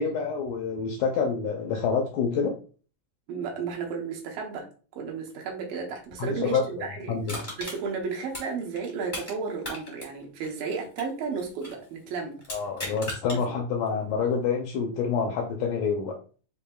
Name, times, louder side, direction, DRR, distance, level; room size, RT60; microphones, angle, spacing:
voice 1, 0.0-2.6 6.2-7.4 12.5-16.2, left 5 dB, 80° left, 3 dB, 1.8 m, -27 dB
voice 2, 3.3-4.7 5.0-7.2 7.6-12.4 13.3-13.6, right 5 dB, 80° right, 0 dB, 2.6 m, -33 dB
Crushing, 7.2-9.3 9.6-11.8 12.4-13.4 13.9-14.0, left 1 dB, 55° left, 0.5 m, -38 dB
6.5 x 2.6 x 2.3 m, 0.39 s
omnidirectional pair, 4.1 m